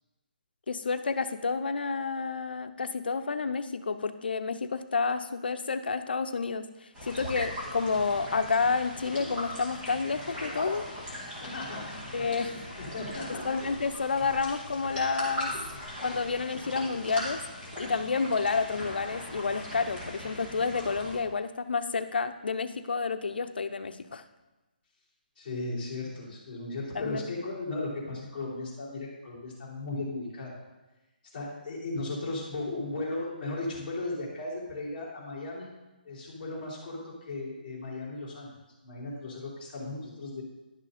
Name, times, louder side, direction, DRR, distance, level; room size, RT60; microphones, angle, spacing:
voice 1, 0.7-10.8 12.1-12.5 13.3-15.5 16.0-17.4 17.8-24.2 26.9-27.2, left 4 dB, 80° left, 10 dB, 0.7 m, -30 dB
sound 1, 6.9-21.2, left 1 dB, 10° right, 1.9 m, -39 dB
voice 2, 11.3-12.0 12.8-13.4 15.4-15.6 17.8-18.0 25.4-30.5 31.3-35.7 36.0-38.5 38.8-40.4, left 2 dB, 20° left, -9 dB, 3.6 m, -36 dB
11.0 x 6.2 x 4.2 m, 1.1 s
hypercardioid pair, 175°, 5 cm